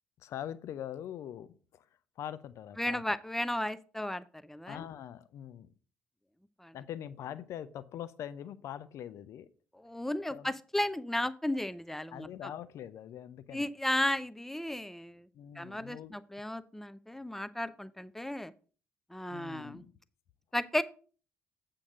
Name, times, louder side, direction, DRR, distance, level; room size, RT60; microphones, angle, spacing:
voice 1, 0.2-1.9 2.2-3.0 4.7-5.7 6.7-9.5 10.3-10.5 12.1-13.7 15.3-16.2 19.3-19.9, left 10 dB, 55° left, 0.6 m, -43 dB
voice 2, 2.8-4.8 6.6-6.8 9.7-12.5 13.5-15.3 15.6-18.5 19.1-19.8 20.5-20.8, left 1 dB, 5° left, 0.6 m, -34 dB
8.4 x 3.8 x 6.5 m
figure-of-eight pair, 50°, 6 cm